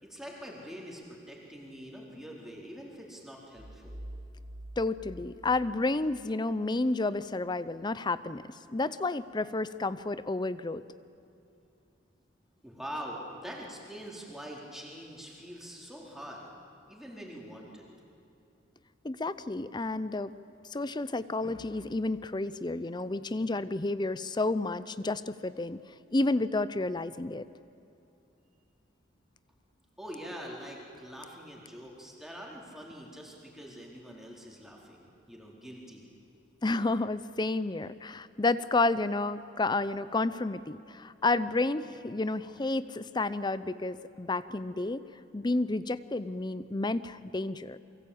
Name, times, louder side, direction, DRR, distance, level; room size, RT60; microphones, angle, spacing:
voice 1, 0.0-4.0 12.6-16.5 16.9-17.8 30.0-36.0, equal, ahead, -2 dB, 4.1 m, -44 dB
sound 1, 3.6-6.2, right 1 dB, 85° right, 2.1 m, -46 dB
voice 2, 4.8-8.4 8.7-10.8 19.0-20.3 20.7-25.8 26.1-27.5 36.6-45.0 45.3-47.8, left 2 dB, 20° left, 15 dB, 0.6 m, -30 dB
28.5 x 23.5 x 8.6 m, 2.6 s
head